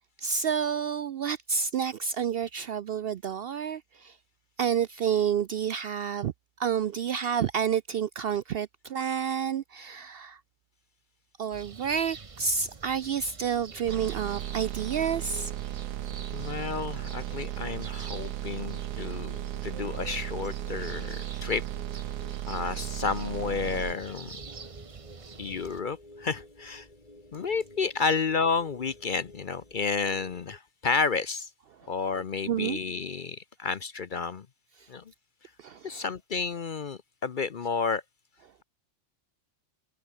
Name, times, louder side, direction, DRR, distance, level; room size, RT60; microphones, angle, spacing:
voice 1, 0.2-4.2 4.6-6.3 6.6-10.4 11.4-15.5 17.3-17.5 19.0-19.2 20.9-21.0 31.8-31.9 32.5-32.8 34.8-34.9 35.6-36.0, right 7 dB, 60° right, 0.6 m, -29 dB
sound 1, 11.5-25.8, right 5 dB, 30° right, 0.8 m, -46 dB
sound 2, 13.7-30.6, left 1 dB, 30° left, 5.0 m, -52 dB
sound 3, 13.9-23.9, right 14 dB, 85° right, 1.0 m, -36 dB
voice 2, 16.3-21.6 22.5-24.3 25.4-26.9 27.3-31.5 31.9-34.5 34.9-35.0 35.8-38.0, left 5 dB, 45° left, 0.7 m, -31 dB
omnidirectional pair, 1.4 m